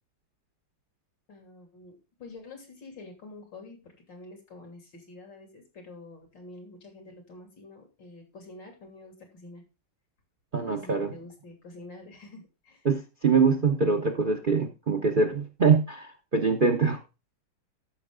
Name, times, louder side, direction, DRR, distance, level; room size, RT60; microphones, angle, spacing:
voice 1, 1.3-9.6 10.7-12.9, left 2 dB, 80° left, 4 dB, 3.5 m, -47 dB
voice 2, 10.5-11.1 12.8-17.0, right 5 dB, 45° right, 7 dB, 0.7 m, -24 dB
13.5 x 5.9 x 3.7 m, 0.28 s
omnidirectional pair, 1.9 m